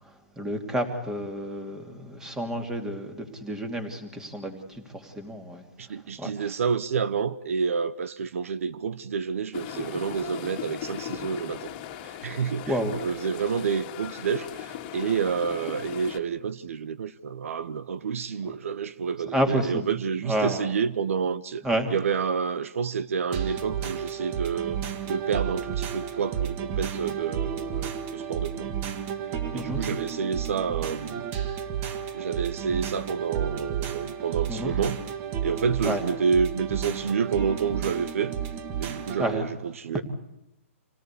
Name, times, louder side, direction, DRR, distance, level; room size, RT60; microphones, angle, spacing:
voice 1, 0.4-5.6 6.2-6.5 12.7-12.9 19.3-19.9 20.2-20.7 21.6-21.9 29.5-29.8 34.5-34.7 35.8-36.0 39.2-39.4, equal, 5° right, 2.7 m, -30 dB
voice 2, 5.8-11.7 12.0-21.6 21.9-28.7 29.5-31.3 32.1-35.0 35.4-38.4 38.8-40.0, right 6 dB, 70° right, 1.0 m, -29 dB
sound 1, 9.5-16.2, left 11 dB, 30° left, 2.1 m, -38 dB
sound 2, 23.3-39.3, right 8 dB, 25° right, 1.6 m, -32 dB
27.0 x 18.0 x 8.4 m
hypercardioid pair, 160°, 8 cm